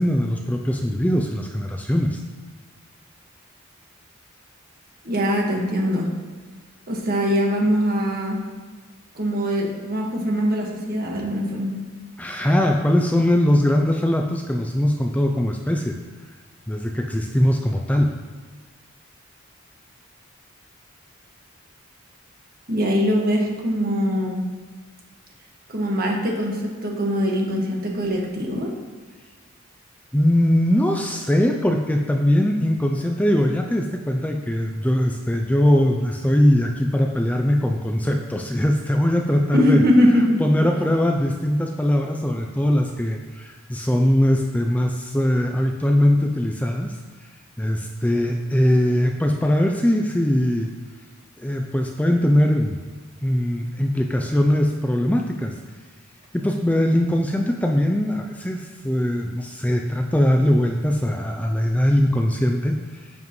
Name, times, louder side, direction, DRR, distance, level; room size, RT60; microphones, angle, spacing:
voice 1, 0.0-2.2 12.2-16.0 16.7-18.1 30.1-39.8 40.1-47.0 47.6-50.7 51.4-52.8 53.2-55.6 56.3-63.1, left 1 dB, 5° left, 2 dB, 0.4 m, -21 dB
voice 2, 5.0-6.1 6.9-8.4 9.1-11.7 22.7-24.4 25.7-28.7 39.5-40.4, equal, 50° right, -1 dB, 1.7 m, -22 dB
10.5 x 7.2 x 3.2 m, 1.4 s
head